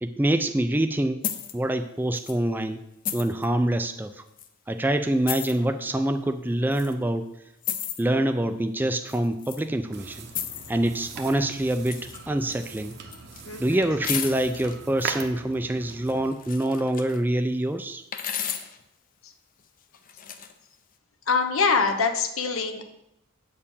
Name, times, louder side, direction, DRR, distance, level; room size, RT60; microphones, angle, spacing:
voice 1, 0.0-1.2 1.5-2.8 3.1-4.2 4.7-7.3 8.0-10.3 10.7-13.0 13.6-18.0, right 1 dB, 10° right, 7 dB, 0.4 m, -25 dB
sound 1, 1.2-1.5 2.2-2.3 3.1-3.5 4.4-4.5 5.3-5.5 6.7-6.9 7.6-8.0 9.1-9.6 10.3-10.8 11.9-12.2 12.5-13.4 14.0-14.8 16.1-17.2 18.1-18.8 19.9-20.5, left 9 dB, 40° left, 0.6 m, -33 dB
sound 2, 9.9-16.3, right 5 dB, 50° right, 0.8 m, -40 dB
voice 2, 13.5-14.0 18.3-18.4 19.2-19.3 21.3-22.8, left 5 dB, 75° left, 6 dB, 1.0 m, -25 dB
8.4 x 4.5 x 7.1 m, 0.84 s
head